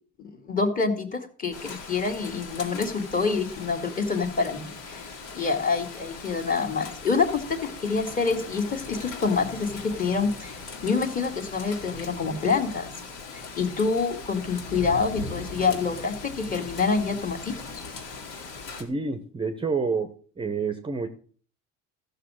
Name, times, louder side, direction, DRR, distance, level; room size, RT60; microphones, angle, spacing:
voice 1, 0.2-12.9 13.6-17.5, left 4 dB, 25° left, 6 dB, 2.1 m, -27 dB
Rain, 1.5-18.8, left 3 dB, 80° left, 3.4 m, -39 dB
voice 2, 18.8-21.1, right 4 dB, 15° right, 8 dB, 0.8 m, -28 dB
14.0 x 6.7 x 6.3 m, 0.44 s
cardioid pair, 140°, 34 cm